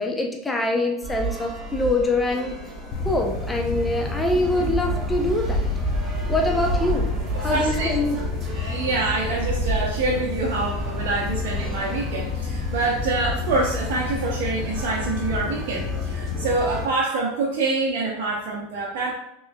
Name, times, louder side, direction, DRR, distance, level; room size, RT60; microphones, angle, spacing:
voice 1, 0.0-2.6 3.0-5.7 6.3-8.2, left 1 dB, 10° left, 1 dB, 0.6 m, -24 dB
sound 1, 1.0-16.8, right 1 dB, 35° right, 1.5 m, -31 dB
sound 2, 2.9-16.9, left 5 dB, 50° left, 0.6 m, -30 dB
voice 2, 7.4-7.9 8.5-19.1, right 3 dB, 60° right, -2 dB, 0.6 m, -26 dB
5.4 x 3.0 x 2.2 m, 0.84 s
hypercardioid pair, 90°, 0 cm